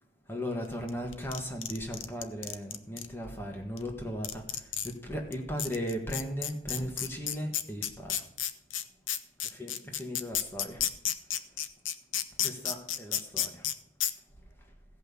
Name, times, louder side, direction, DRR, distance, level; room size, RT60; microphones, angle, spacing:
voice 1, 0.3-8.2 9.6-10.8 12.4-13.7, equal, 10° left, 2 dB, 1.6 m, -37 dB
sound 1, 0.9-3.1 3.8-3.9 4.2-4.9 5.3-5.4 5.6-13.7 14.0-14.1, left 10 dB, 90° left, 0.8 m, -31 dB
sound 2, 6.6-7.1, right 2 dB, 50° left, 3.4 m, -57 dB
16.0 x 5.6 x 6.9 m, 0.79 s
head